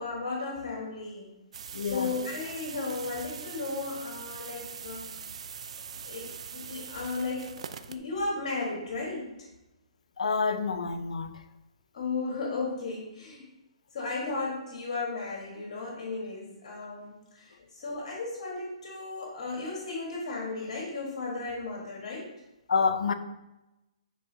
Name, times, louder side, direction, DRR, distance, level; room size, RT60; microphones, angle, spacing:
voice 1, 0.0-1.3 1.8-5.1 6.0-7.6 7.9-9.5 11.9-13.5 13.9-22.3, left 3 dB, 60° left, 1.6 m, -35 dB
sound 1, 1.5-8.0, right 7 dB, 65° right, 0.5 m, -42 dB
voice 2, 1.7-2.1 10.2-11.4 22.7-23.1, left 5 dB, 80° left, 0.6 m, -28 dB
9.3 x 3.7 x 2.8 m
hypercardioid pair, 145°, 4 cm